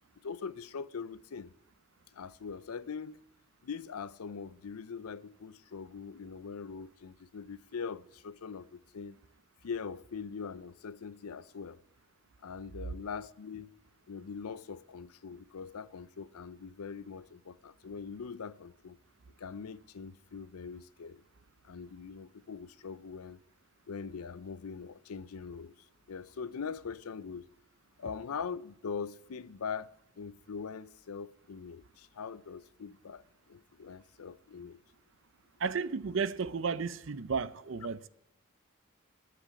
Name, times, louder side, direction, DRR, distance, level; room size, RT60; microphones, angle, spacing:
voice 1, 0.2-1.5 2.1-3.2 3.6-9.2 9.6-11.8 12.4-13.8 14.1-19.0 19.4-21.2 21.6-23.4 23.9-25.7 26.1-27.4 28.0-34.8, left 5 dB, 90° left, 0.5 m, -42 dB
voice 2, 35.6-38.1, right 5 dB, 60° right, 0.5 m, -33 dB
9.8 x 7.9 x 8.8 m
head